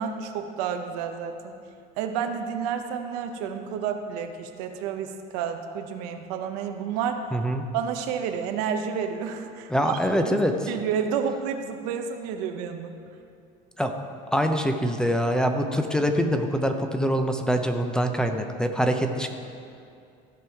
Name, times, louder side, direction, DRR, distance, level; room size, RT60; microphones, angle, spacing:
voice 1, 0.0-1.5 2.0-7.2 7.7-10.0 10.2-10.4 10.7-12.9, right 7 dB, 90° right, 5 dB, 0.9 m, -30 dB
voice 2, 7.3-7.7 9.7-10.7 13.8-13.9 14.3-19.3, equal, 5° left, 5 dB, 0.6 m, -24 dB
15.0 x 5.4 x 4.6 m, 2.5 s
cardioid pair, 120°, 19 cm